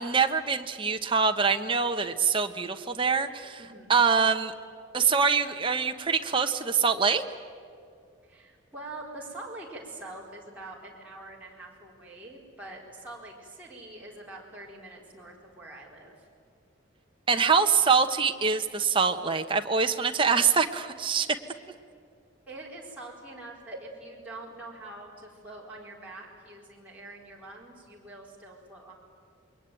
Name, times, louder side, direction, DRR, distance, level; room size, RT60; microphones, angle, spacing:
voice 1, 0.0-3.6 3.9-4.5 4.9-7.2 17.3-21.3, right 5 dB, 25° right, 5 dB, 1.1 m, -24 dB
voice 2, 3.6-4.1 8.2-16.1 22.5-28.9, right 2 dB, 5° right, -5 dB, 4.4 m, -44 dB
28.0 x 22.5 x 9.1 m, 2.4 s
head